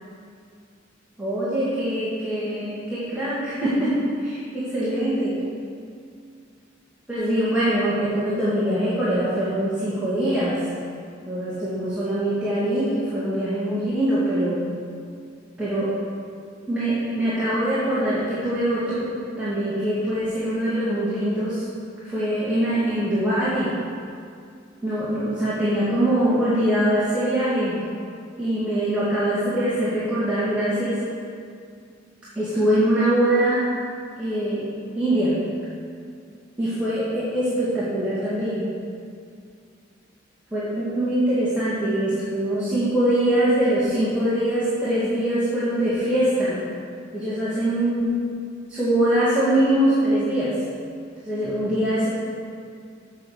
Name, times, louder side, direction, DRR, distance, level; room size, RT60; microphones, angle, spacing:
voice 1, 1.2-4.0 4.2-5.3 7.1-10.6 11.3-14.6 15.6-15.9 16.6-19.1 19.4-21.6 22.0-23.7 24.8-27.8 28.4-31.0 32.4-33.7 34.2-34.6 34.9-35.3 36.6-38.6 40.5-46.6 47.1-48.2 48.7-50.5 51.2-52.1, right 1 dB, 5° right, -12 dB, 2.1 m, -23 dB
7.6 x 7.2 x 6.5 m, 2.3 s
head